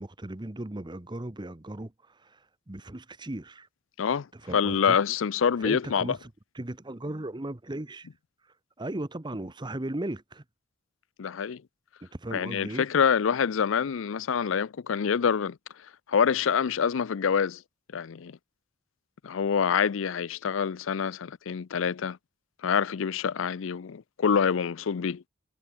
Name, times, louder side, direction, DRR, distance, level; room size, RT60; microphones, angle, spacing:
voice 1, 0.0-3.7 4.3-5.0 5.6-8.1 8.8-10.4 12.0-12.8, right 1 dB, 25° right, 1.0 m, -37 dB
voice 2, 4.5-6.2 11.2-11.6 12.3-15.6 16.1-17.6 17.9-18.4 19.2-22.2 22.6-25.2, left 7 dB, 75° left, 0.5 m, -26 dB
head